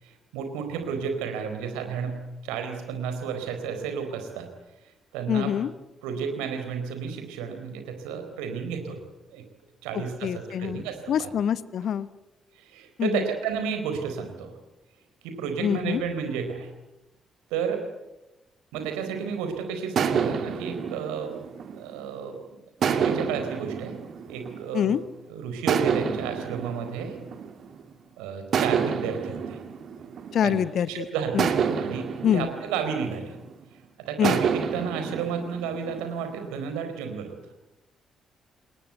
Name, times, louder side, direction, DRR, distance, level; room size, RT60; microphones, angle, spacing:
voice 1, 0.0-4.5 5.1-5.5 6.0-9.0 9.3-9.4 9.8-11.3 12.6-14.5 15.2-16.7 17.5-17.8 18.7-21.4 21.7-22.4 22.9-24.0 24.3-25.0 25.3-27.2 28.2-29.6 30.4-30.6 30.9-31.5 31.7-33.4 34.0-37.4, right 6 dB, 70° right, 6 dB, 4.4 m, -32 dB
voice 2, 5.3-5.7 10.2-10.8 11.1-12.1 13.0-13.2 15.6-16.0 24.7-25.0 30.3-31.0 31.3-31.5 32.2-32.5 34.2-34.4, left 9 dB, 55° left, 16 dB, 1.1 m, -25 dB
sound 1, 18.7-19.4 20.0-22.2 22.8-25.0 25.7-27.9 28.5-30.8 31.4-33.6 34.2-36.5, right 7 dB, 55° right, 2.4 m, -29 dB
28.5 x 21.5 x 8.2 m, 1.0 s
figure-of-eight pair, 40°, 0 cm